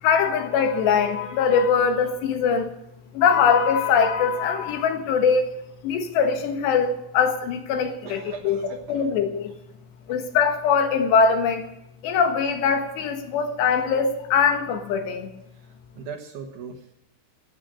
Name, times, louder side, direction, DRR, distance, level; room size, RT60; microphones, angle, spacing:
voice 1, 0.0-2.7 3.1-5.5 5.8-8.6 8.9-9.5 10.1-11.7 12.0-15.3, left 6 dB, 80° left, 6 dB, 3.7 m, -22 dB
voice 2, 8.0-9.1 10.1-10.2 16.0-16.9, right 6 dB, 60° right, 4 dB, 2.2 m, -39 dB
15.5 x 9.5 x 6.3 m, 0.84 s
omnidirectional pair, 4.9 m